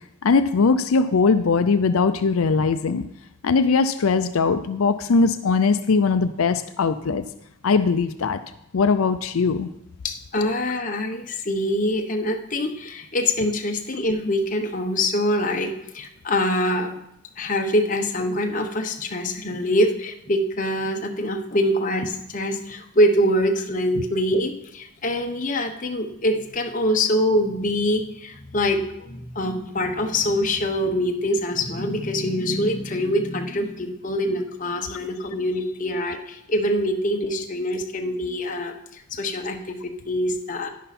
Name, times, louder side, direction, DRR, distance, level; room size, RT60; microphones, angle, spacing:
voice 1, 0.2-3.0 3.4-7.2 7.6-8.4 8.7-9.7, left 4 dB, 85° left, 9 dB, 0.5 m, -20 dB
voice 2, 10.0-16.9 17.4-38.7 39.1-40.7, left 1 dB, 40° left, 3 dB, 1.0 m, -24 dB
11.0 x 10.0 x 4.2 m, 0.79 s
head